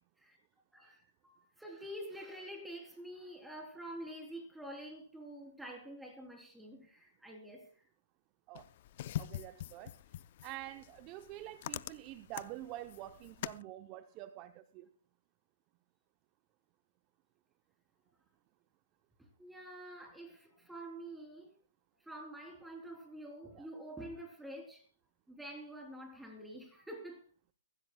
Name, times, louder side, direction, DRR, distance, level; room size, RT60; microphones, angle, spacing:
voice 1, 0.7-7.8 19.2-21.5 22.0-24.9 25.3-27.2, right 1 dB, 5° right, 3.4 m, -47 dB
sound 1, 8.6-13.6, left 13 dB, 40° left, 0.5 m, -44 dB
voice 2, 9.2-14.9 23.5-23.7, right 14 dB, 25° right, 0.7 m, -47 dB
23.5 x 15.0 x 2.3 m
hypercardioid pair, 140°, 0 cm